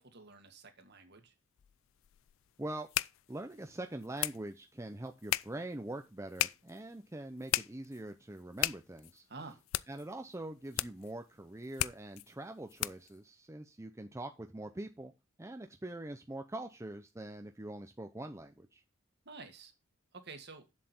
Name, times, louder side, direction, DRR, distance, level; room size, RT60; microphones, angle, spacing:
voice 1, 0.0-1.3 9.3-9.6 19.3-19.7 20.1-20.7, right 4 dB, 50° right, 6 dB, 1.9 m, -50 dB
sound 1, 1.6-13.2, left 15 dB, 65° left, 0.4 m, -39 dB
voice 2, 3.3-9.2 9.9-15.1 15.4-18.8, right 1 dB, 15° right, 5 dB, 0.6 m, -43 dB
7.5 x 7.5 x 4.4 m, 0.25 s
head